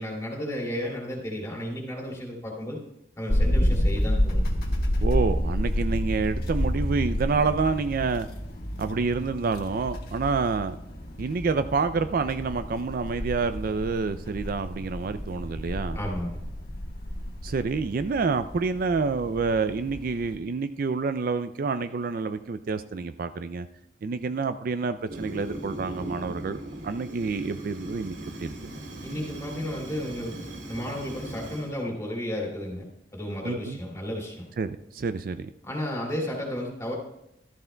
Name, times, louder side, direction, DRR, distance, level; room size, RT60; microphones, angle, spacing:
voice 1, 0.0-2.8 3.2-4.6 15.9-16.4 29.0-32.8 33.1-34.5 35.6-36.9, equal, 15° left, -1 dB, 2.6 m, -33 dB
sound 1, 3.3-20.4, equal, 55° left, 1.4 m, -29 dB
voice 2, 5.0-8.3 8.8-10.8 11.2-16.0 17.4-23.7 24.0-28.5 33.5-33.8 34.6-35.5, right 4 dB, 50° right, 10 dB, 0.4 m, -28 dB
Fire, 25.1-31.7, right 1 dB, 90° right, 2.2 m, -39 dB
14.5 x 13.5 x 2.2 m, 0.82 s
head